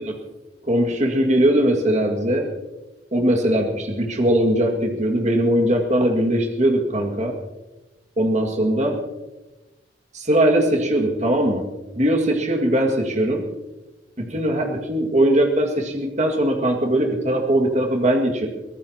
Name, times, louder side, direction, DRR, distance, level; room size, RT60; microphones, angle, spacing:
voice 1, 0.7-2.5 3.1-7.3 8.2-9.0 10.1-11.6 12.0-13.4 14.2-18.5, right 1 dB, 40° right, 1 dB, 2.0 m, -20 dB
24.0 x 18.0 x 2.9 m, 1.1 s
head